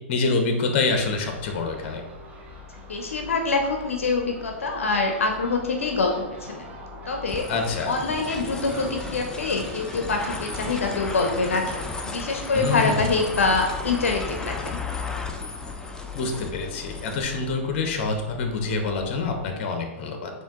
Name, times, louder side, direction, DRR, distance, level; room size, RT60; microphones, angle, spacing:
voice 1, 0.1-2.0 7.5-7.9 12.5-13.2 16.1-20.3, left 3 dB, 55° left, 4 dB, 0.8 m, -26 dB
Crow / Gull seagull, 0.9-19.5, left 2 dB, 20° right, 0.7 m, -42 dB
voice 2, 2.9-6.7 7.1-7.4 7.9-14.8, left 3 dB, 90° left, 3 dB, 0.5 m, -25 dB
sound 1, 7.3-17.2, left 3 dB, 10° left, 0.4 m, -35 dB
4.4 x 2.5 x 3.6 m, 1.0 s
hypercardioid pair, 120°, 7 cm